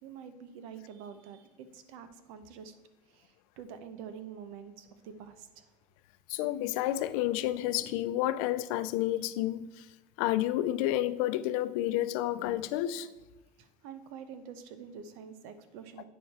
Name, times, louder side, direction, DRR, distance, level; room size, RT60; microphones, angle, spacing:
voice 1, 0.0-2.8 3.1-5.7 13.6-16.1, right 7 dB, 80° right, 0.9 m, -47 dB
voice 2, 6.3-9.9 10.2-13.1, left 14 dB, 80° left, 0.5 m, -30 dB
9.1 x 6.7 x 4.3 m
supercardioid pair, 105°, 17 cm